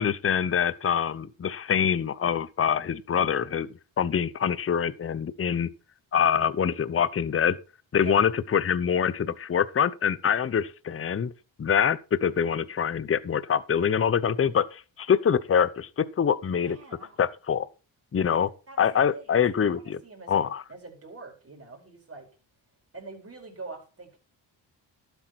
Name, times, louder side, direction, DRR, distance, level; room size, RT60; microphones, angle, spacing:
voice 1, 0.0-3.7 4.0-5.7 6.1-7.6 7.9-11.3 11.6-16.8 17.2-17.7 18.1-18.5 18.8-20.0 20.3-20.6, left 7 dB, 30° left, 0.7 m, -25 dB
voice 2, 8.0-8.3 16.6-17.2 18.2-18.9 19.1-22.3 22.9-24.2, right 3 dB, 30° right, 4.7 m, -44 dB
12.0 x 8.1 x 4.5 m
cardioid pair, 90°, 45 cm